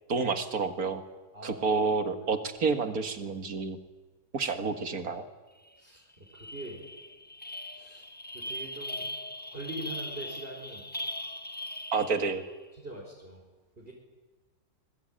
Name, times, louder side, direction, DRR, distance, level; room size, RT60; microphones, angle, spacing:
voice 1, 0.1-1.0 1.4-3.8 4.3-5.2 11.9-12.4, right 4 dB, 75° right, 8 dB, 2.4 m, -29 dB
sound 1, 5.7-5.8 6.1-12.5, left 1 dB, 10° left, 0.8 m, -40 dB
voice 2, 6.3-6.8 7.7-8.0 8.3-9.1 9.5-10.8 12.8-13.4 13.8-13.9, right 2 dB, 40° right, -2 dB, 4.9 m, -42 dB
27.0 x 21.5 x 9.0 m, 1.2 s
omnidirectional pair, 1.6 m